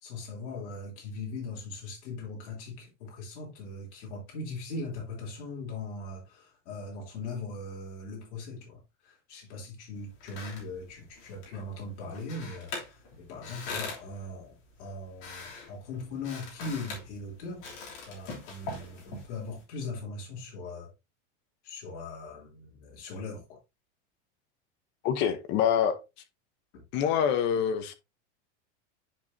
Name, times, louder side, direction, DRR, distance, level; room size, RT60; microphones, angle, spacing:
voice 1, 0.0-14.5 14.8-17.7 18.1-20.9 21.6-23.6, left 3 dB, 70° left, 3.4 m, -40 dB
sound 1, 9.9-19.6, left 4 dB, 45° left, 3.0 m, -43 dB
voice 2, 25.0-26.0 26.9-28.0, left 8 dB, 30° left, 0.8 m, -26 dB
10.0 x 4.7 x 2.7 m
supercardioid pair, 170°, 36 cm